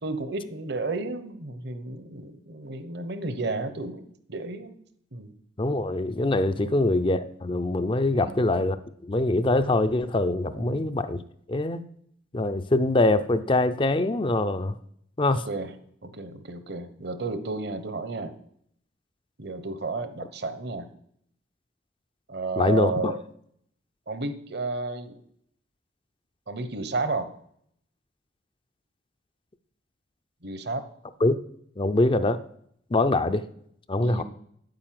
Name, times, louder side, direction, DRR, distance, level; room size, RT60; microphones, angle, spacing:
voice 1, 0.0-4.8 5.1-5.3 6.6-6.8 8.1-8.4 10.5-10.9 15.4-15.7 16.0-18.3 19.4-20.9 22.3-23.2 24.1-25.2 26.5-27.3 30.4-30.8 34.0-34.2, right 3 dB, 60° right, 11 dB, 1.1 m, -32 dB
voice 2, 5.6-8.8 9.0-11.2 11.5-11.8 12.3-14.8 15.2-15.4 22.6-23.1 31.2-31.4 31.8-32.4 32.9-33.4 33.9-34.2, left 2 dB, 25° left, 11 dB, 0.5 m, -23 dB
9.5 x 8.9 x 7.7 m, 0.69 s
head